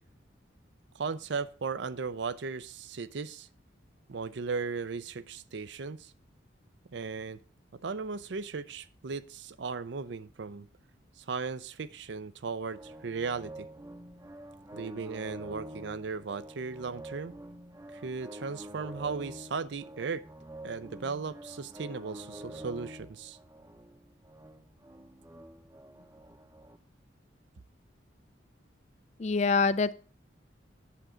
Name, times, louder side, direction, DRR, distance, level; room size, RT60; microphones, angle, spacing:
voice 1, 0.9-3.5 4.1-6.1 6.9-7.4 7.8-10.7 11.2-13.7 14.7-17.4 17.9-20.2 20.6-23.4, right 4 dB, 65° right, 15 dB, 0.5 m, -36 dB
sound 1, 12.7-26.8, right 1 dB, 15° right, 0.6 m, -47 dB
voice 2, 29.2-29.9, left 4 dB, 35° left, 16 dB, 0.3 m, -25 dB
8.6 x 7.7 x 5.0 m, 0.39 s
head